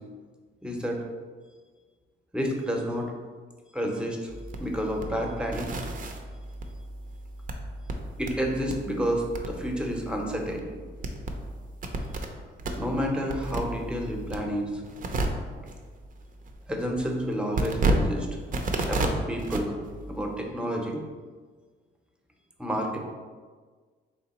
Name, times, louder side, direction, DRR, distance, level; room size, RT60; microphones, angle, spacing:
voice 1, 0.6-1.0 2.3-3.1 3.7-4.3 4.6-5.7 8.2-10.7 12.7-14.7 16.7-18.3 18.8-19.8 20.1-21.0 22.6-23.0, equal, 5° right, 0 dB, 0.7 m, -29 dB
sound 1, 4.3-12.3 12.6-20.4, right 2 dB, 45° right, 0.5 m, -33 dB
3.5 x 2.8 x 4.2 m, 1.5 s
cardioid pair, 90°, 20 cm